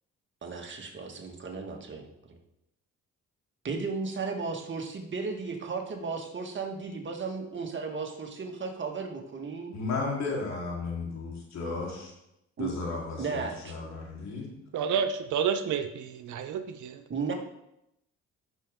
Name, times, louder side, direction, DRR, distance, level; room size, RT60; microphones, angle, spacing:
voice 1, 0.4-2.4 3.6-9.7 12.6-12.7 13.2-13.8 17.1-17.3, right 4 dB, 40° right, 2 dB, 1.7 m, -35 dB
voice 2, 9.7-12.1 12.6-14.5, left 3 dB, 65° left, -2 dB, 3.7 m, -34 dB
voice 3, 14.7-17.0, right 7 dB, 75° right, 9 dB, 0.9 m, -30 dB
14.5 x 6.2 x 3.7 m, 0.83 s
cardioid pair, 90°, 30 cm